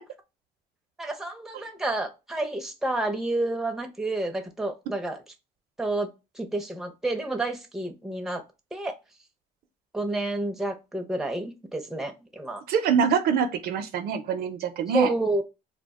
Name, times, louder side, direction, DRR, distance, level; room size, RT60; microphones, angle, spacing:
voice 1, 1.0-5.2 5.8-6.1 6.4-8.4 8.7-8.9 9.9-12.6 14.9-15.4, right 2 dB, 5° right, 0.5 m, -29 dB
voice 2, 12.7-15.1, right 7 dB, 65° right, 0.5 m, -24 dB
2.3 x 2.1 x 3.5 m
cardioid pair, 110°, 17 cm